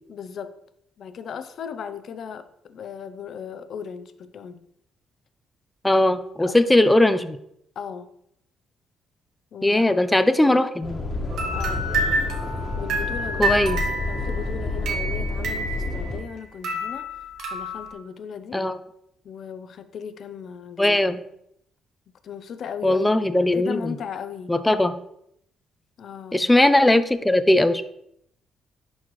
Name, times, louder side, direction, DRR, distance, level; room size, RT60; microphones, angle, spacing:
voice 1, 0.1-0.5 1.0-4.6 6.4-6.6 7.8-8.1 9.5-9.9 10.4-10.6 11.5-11.9 12.8-13.5 14.0-17.1 17.5-18.7 19.2-21.0 22.2-23.1 23.4-24.9 26.0-26.4, left 7 dB, 60° left, 11 dB, 0.6 m, -36 dB
voice 2, 5.8-7.4 9.6-11.0 13.4-13.8 18.5-18.8 20.8-21.2 22.8-23.9 24.5-25.0 26.3-27.8, left 1 dB, 10° left, 11 dB, 0.6 m, -19 dB
sound 1, 10.8-16.2, left 2 dB, 40° left, 1.5 m, -29 dB
sound 2, 11.3-16.3 16.6-17.9, right 1 dB, 75° right, 1.6 m, -29 dB
10.5 x 4.3 x 3.2 m, 0.73 s
cardioid pair, 90°, 0 cm